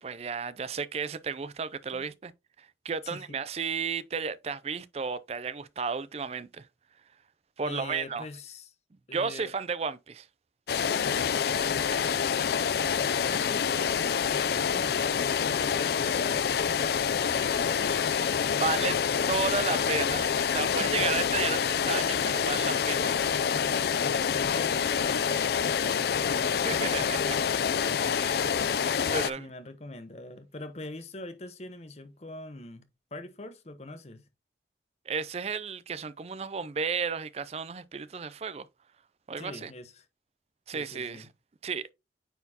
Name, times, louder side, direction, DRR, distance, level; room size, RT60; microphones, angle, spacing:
voice 1, 0.0-2.3 2.6-6.7 7.6-8.3 9.1-10.3 11.6-12.0 18.5-19.0 19.3-23.1 26.6-27.4 28.0-28.7 29.0-29.5 35.1-38.7 39.3-39.7 40.7-41.3 41.6-41.9, right 5 dB, 35° right, 0.4 m, -33 dB
voice 2, 3.0-3.4 7.6-8.7 9.1-9.5 12.9-13.9 14.2-17.9 20.7-21.2 23.9-26.5 29.4-32.8 33.1-34.2 39.4-40.0 40.7-41.3, left 2 dB, 35° left, 0.9 m, -43 dB
sound 1, 10.7-29.3, left 7 dB, 60° left, 0.4 m, -27 dB
9.1 x 4.2 x 2.8 m
head